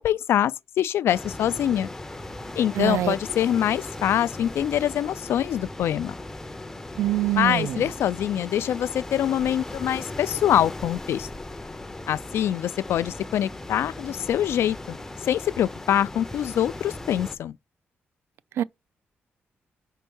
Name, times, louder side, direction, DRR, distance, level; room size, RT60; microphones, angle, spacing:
voice 1, 0.0-1.9 2.6-6.1 7.4-11.3 12.1-17.6, left 11 dB, 75° left, 0.3 m, -24 dB
sound 1, 1.1-17.4, left 2 dB, 10° left, 0.5 m, -38 dB
voice 2, 2.7-3.1 7.0-7.9 18.6-18.7, right 12 dB, 75° right, 0.3 m, -24 dB
5.4 x 4.5 x 5.3 m
wide cardioid pair, 180°, 4 cm